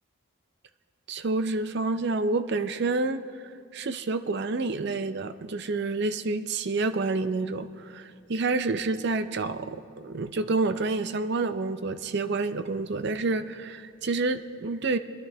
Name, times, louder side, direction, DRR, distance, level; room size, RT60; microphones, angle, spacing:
voice 1, 1.1-3.2 3.7-15.0, right 3 dB, 50° right, 11 dB, 0.5 m, -28 dB
24.5 x 10.5 x 3.4 m, 2.4 s
head